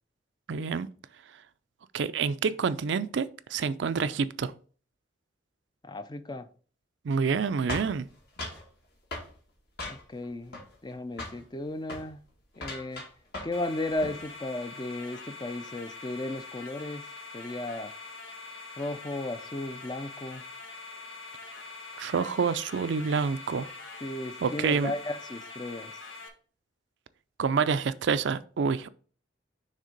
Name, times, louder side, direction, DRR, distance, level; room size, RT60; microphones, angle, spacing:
voice 1, 0.5-0.9 1.9-4.5 7.0-8.1 22.0-23.7 24.4-24.9 27.4-28.9, right 5 dB, 65° right, 0.4 m, -27 dB
voice 2, 5.8-6.5 9.9-12.2 12.6-13.0 13.4-17.0 17.3-17.9 18.8-20.4 24.0-25.9, left 2 dB, 20° left, 0.5 m, -35 dB
sound 1, 7.7-8.7 9.1-9.3 9.8-10.2 10.5-10.9 11.2-11.4 11.8-12.1 12.5-13.6 13.9-14.2, left 2 dB, 55° left, 2.0 m, -38 dB
sound 2, 13.5-26.3, left 3 dB, 90° left, 1.2 m, -44 dB
6.5 x 3.4 x 5.1 m
head